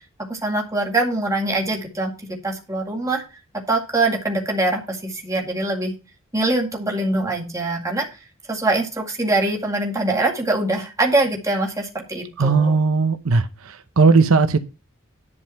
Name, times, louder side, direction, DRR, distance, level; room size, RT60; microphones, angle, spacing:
voice 1, 0.3-2.1 2.4-3.2 3.7-5.9 6.3-8.1 8.5-12.8, right 2 dB, 15° right, 2.1 m, -23 dB
voice 2, 12.4-14.6, right 4 dB, 85° right, 0.8 m, -17 dB
11.0 x 5.4 x 5.7 m
head